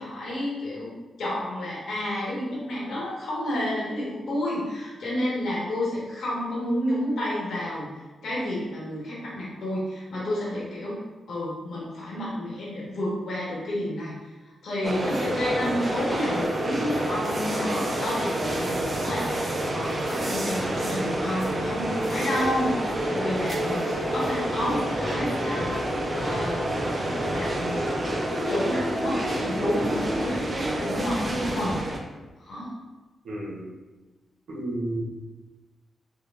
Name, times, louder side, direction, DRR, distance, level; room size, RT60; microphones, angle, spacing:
voice 1, 0.0-7.9 8.2-11.0 11.3-14.1 14.6-25.7 26.2-31.8 32.4-32.7, left 1 dB, 80° left, -6 dB, 1.3 m, -30 dB
sound 1, 14.8-32.0, right 1 dB, 40° right, 0.6 m, -28 dB
voice 2, 33.2-33.6 34.5-35.0, right 1 dB, 75° right, -4 dB, 1.0 m, -31 dB
4.5 x 2.3 x 2.4 m, 1.2 s
cardioid pair, 55°, 0 cm